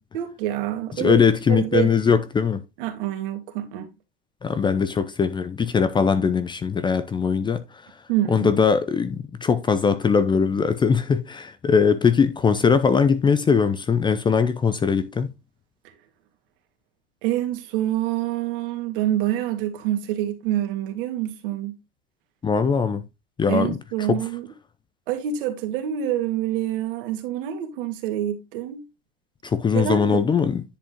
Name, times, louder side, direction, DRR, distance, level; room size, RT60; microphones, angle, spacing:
voice 1, 0.1-1.2 1.5-1.9 2.8-3.9 8.1-8.5 17.2-21.8 23.5-24.5 25.1-28.8 29.7-30.2, right 12 dB, 60° right, 2.4 m, -26 dB
voice 2, 0.9-2.6 4.4-7.6 8.3-15.3 22.4-23.0 23.4-23.8 24.1-24.3 29.4-30.6, left 6 dB, 15° left, 0.6 m, -21 dB
10.0 x 5.1 x 3.8 m
hypercardioid pair, 115°, 30 cm